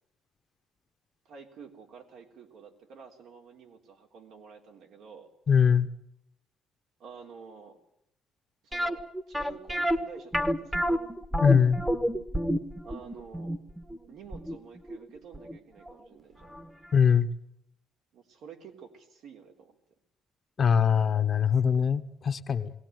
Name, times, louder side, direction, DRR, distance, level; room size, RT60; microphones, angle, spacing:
voice 1, 1.3-5.3 7.0-7.8 8.6-11.0 12.8-13.6 14.1-16.6 18.1-19.8, right 6 dB, 75° right, 2 dB, 3.6 m, -49 dB
voice 2, 5.5-5.9 11.4-11.8 16.9-17.3 20.6-22.7, left 7 dB, 40° left, 8 dB, 1.3 m, -22 dB
sound 1, 8.7-15.6 15.9-16.0 16.5-16.7 16.9-17.0, equal, 5° right, 1.3 m, -29 dB
21.5 x 17.5 x 9.3 m, 0.74 s
cardioid pair, 115°, 0 cm